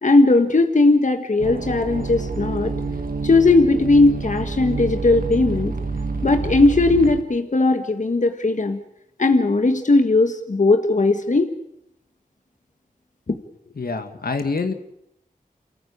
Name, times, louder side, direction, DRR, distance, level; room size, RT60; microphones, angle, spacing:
voice 1, 0.0-2.7 3.2-5.7 6.2-8.8 9.2-11.5 13.3-13.4, left 2 dB, 55° left, 6 dB, 1.6 m, -18 dB
sound 1, 1.4-7.2, right 4 dB, 65° right, 2.0 m, -28 dB
voice 2, 13.8-14.7, left 4 dB, 75° left, 7 dB, 2.1 m, -26 dB
28.0 x 14.5 x 8.8 m, 0.80 s
wide cardioid pair, 55°, 16 cm